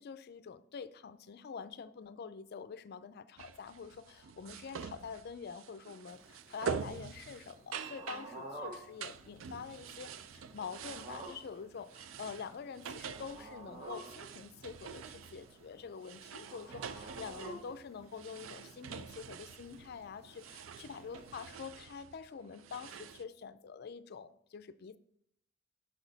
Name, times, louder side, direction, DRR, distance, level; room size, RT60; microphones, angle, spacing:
voice 1, 0.0-25.0, left 6 dB, 55° left, 0.4 m, -46 dB
sound 1, 3.4-23.2, right 7 dB, 85° right, 0.4 m, -46 dB
sound 2, 6.1-21.5, right 1 dB, 30° right, 1.4 m, -52 dB
6.2 x 5.8 x 4.0 m
head